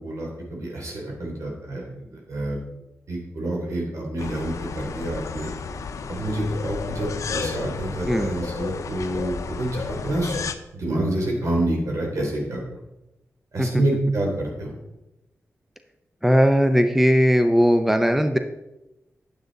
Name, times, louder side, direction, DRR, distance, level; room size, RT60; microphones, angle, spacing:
voice 1, 0.0-2.6 3.1-5.5 6.1-10.4 10.7-12.6 13.5-14.7, right 1 dB, 75° right, -1 dB, 3.2 m, -27 dB
sound 1, 4.2-10.5, left 5 dB, 80° left, 0.6 m, -32 dB
voice 2, 16.2-18.4, equal, 5° right, 7 dB, 0.7 m, -18 dB
9.4 x 7.9 x 4.0 m, 0.94 s
wide cardioid pair, 85°, 5 cm